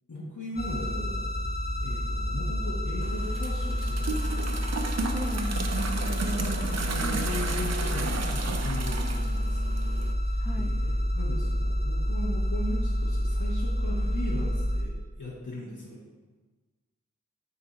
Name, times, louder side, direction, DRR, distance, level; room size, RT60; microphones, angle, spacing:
voice 1, 0.1-1.3 1.8-4.7 6.0-16.0, left 1 dB, 75° left, -6 dB, 1.1 m, -38 dB
sound 1, 0.6-14.8, equal, 30° left, 1.1 m, -29 dB
sound 2, 3.0-10.1, right 3 dB, 60° right, 0.5 m, -34 dB
voice 2, 5.0-6.4 7.0-7.3 10.4-10.7, equal, 5° right, 6 dB, 0.5 m, -38 dB
6.8 x 2.8 x 5.7 m, 1.3 s
wide cardioid pair, 55°, 30 cm